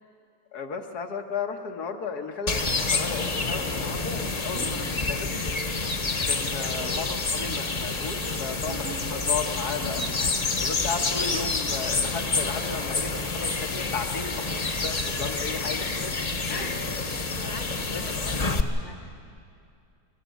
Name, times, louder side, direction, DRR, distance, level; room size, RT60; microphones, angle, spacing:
voice 1, 0.5-5.3 6.3-10.0 10.6-16.1 16.5-17.0 17.9-18.0, left 5 dB, 90° left, 4 dB, 1.9 m, -34 dB
sound 1, 2.5-18.6, left 3 dB, 30° left, 0.9 m, -28 dB
voice 2, 6.9-7.2 16.4-19.1, left 3 dB, 70° left, 5 dB, 1.8 m, -43 dB
sound 2, 8.7-12.3, right 4 dB, 85° right, 2.4 m, -44 dB
25.5 x 13.5 x 9.3 m, 2.5 s
omnidirectional pair, 1.6 m